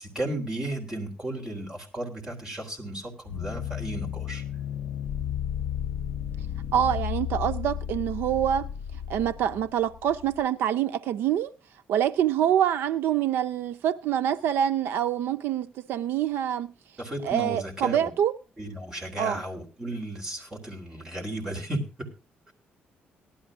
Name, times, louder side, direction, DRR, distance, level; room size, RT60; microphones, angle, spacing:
voice 1, 0.0-4.4 17.0-18.1 18.6-22.1, right 1 dB, 15° right, 3.6 m, -34 dB
sound 1, 3.3-10.4, left 10 dB, 65° left, 0.8 m, -33 dB
voice 2, 6.7-8.7 9.1-11.5 11.9-16.7 17.2-18.4 19.2-19.4, right 10 dB, 80° right, 0.5 m, -26 dB
19.0 x 12.0 x 2.5 m
cardioid pair, 165°, 4 cm